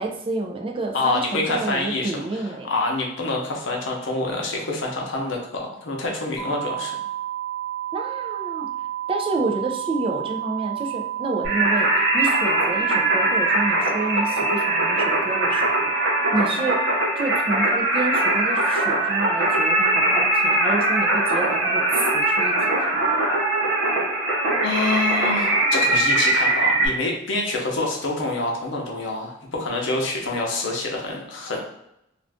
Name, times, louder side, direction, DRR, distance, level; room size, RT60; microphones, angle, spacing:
voice 1, 0.0-2.7 7.9-8.7 9.1-15.9 16.3-16.8 17.2-23.0, right 2 dB, 30° right, 2 dB, 0.4 m, -29 dB
voice 2, 0.9-6.9 24.6-31.6, left 2 dB, 70° left, 0 dB, 0.7 m, -26 dB
sound 1, 6.4-16.4, right 12 dB, 5° left, 0.7 m, -31 dB
Singing, 11.4-26.9, right 2 dB, 70° right, 0.8 m, -21 dB
2.4 x 2.4 x 3.4 m, 0.81 s
head